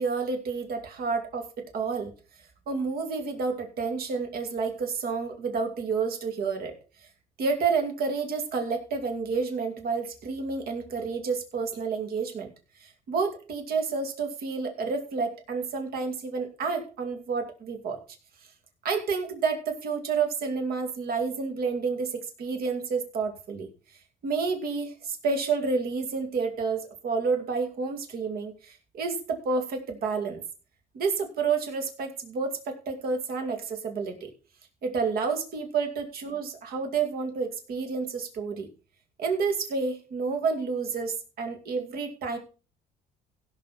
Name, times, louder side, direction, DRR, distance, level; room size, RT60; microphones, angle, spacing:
voice 1, 0.0-2.1 2.7-6.7 7.4-12.5 12.8-18.0 18.8-23.7 24.2-30.4 30.9-34.3 34.8-38.7 39.2-42.4, right 5 dB, 60° right, 5 dB, 2.5 m, -30 dB
16.5 x 6.8 x 4.2 m, 0.35 s
cardioid pair, 110°, 17 cm